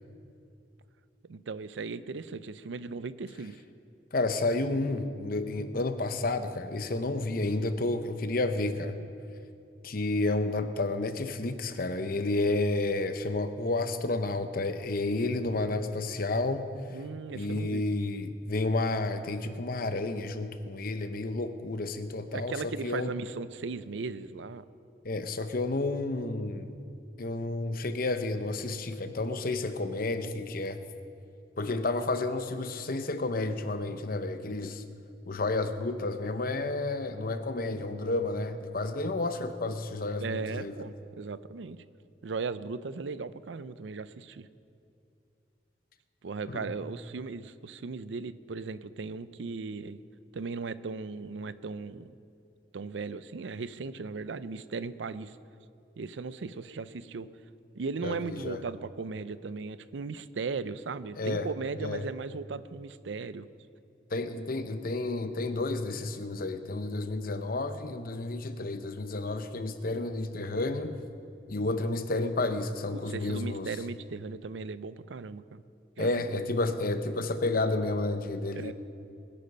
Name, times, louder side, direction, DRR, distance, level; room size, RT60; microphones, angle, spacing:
voice 1, 1.3-3.6 16.9-17.8 22.3-24.6 40.2-41.8 42.2-44.5 46.2-50.0 50.3-52.1 52.7-55.4 56.0-57.3 57.8-63.5 72.9-75.6 76.0-76.1 78.5-78.7, right 4 dB, 85° right, 15 dB, 0.5 m, -37 dB
voice 2, 4.1-9.0 9.8-16.7 17.3-22.6 22.8-23.1 25.0-26.8 27.2-30.8 31.6-34.8 35.3-40.8 46.5-46.7 58.0-58.6 61.2-61.5 61.8-62.1 64.1-71.0 71.5-73.7 76.0-78.7, left 2 dB, 55° left, 9 dB, 0.8 m, -31 dB
21.5 x 8.5 x 5.4 m, 2.6 s
head